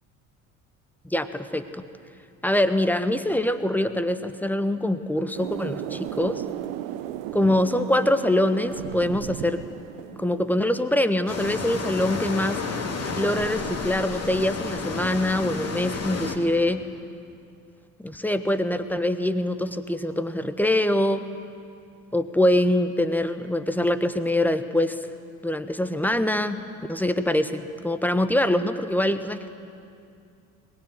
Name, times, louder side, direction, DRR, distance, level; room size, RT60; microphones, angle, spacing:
voice 1, 1.0-1.8 2.4-6.4 7.3-9.6 10.2-12.6 13.2-16.8 18.0-21.2 22.1-25.0 25.4-26.6 26.9-29.5, left 1 dB, 5° left, 10 dB, 1.4 m, -24 dB
sound 1, 5.3-11.8, right 13 dB, 65° right, 1.0 m, -36 dB
sound 2, 11.3-16.4, left 4 dB, 35° left, 3.2 m, -31 dB
22.5 x 20.0 x 9.7 m, 2.4 s
figure-of-eight pair, 60°, 44 cm